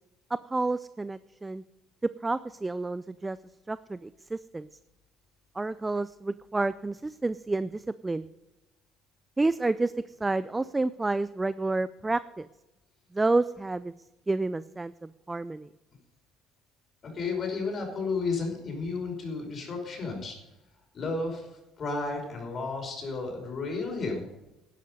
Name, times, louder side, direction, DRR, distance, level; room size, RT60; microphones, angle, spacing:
voice 1, 0.5-1.6 2.2-3.4 3.7-4.7 5.6-8.3 9.4-9.9 10.2-12.5 13.1-13.9 14.3-14.9 15.3-15.7, right 2 dB, 15° right, 15 dB, 0.4 m, -29 dB
voice 2, 17.0-20.4 20.9-21.5 21.8-24.3, left 3 dB, 45° left, 2 dB, 5.3 m, -32 dB
12.0 x 11.0 x 5.4 m, 0.98 s
supercardioid pair, 90°, 0 cm